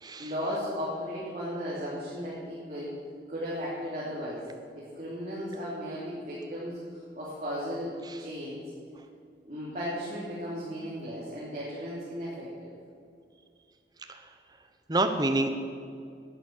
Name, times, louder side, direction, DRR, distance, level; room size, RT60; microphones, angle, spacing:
voice 1, 0.2-2.9 3.3-4.4 4.7-8.6 9.5-12.7, equal, 40° right, -9 dB, 3.0 m, -35 dB
voice 2, 14.9-15.5, right 2 dB, 25° right, 6 dB, 0.9 m, -27 dB
11.0 x 9.3 x 7.3 m, 2.3 s
head